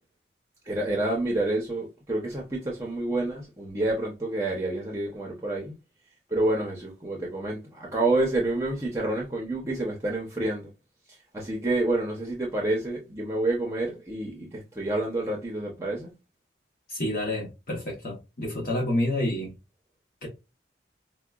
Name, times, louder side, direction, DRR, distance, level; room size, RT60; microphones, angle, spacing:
voice 1, 0.7-5.7 6.3-10.7 11.3-16.1, right 2 dB, 15° right, 0.7 m, -28 dB
voice 2, 16.9-19.5 20.2-20.3, left 1 dB, 50° left, 1.0 m, -29 dB
4.7 x 2.1 x 2.3 m
head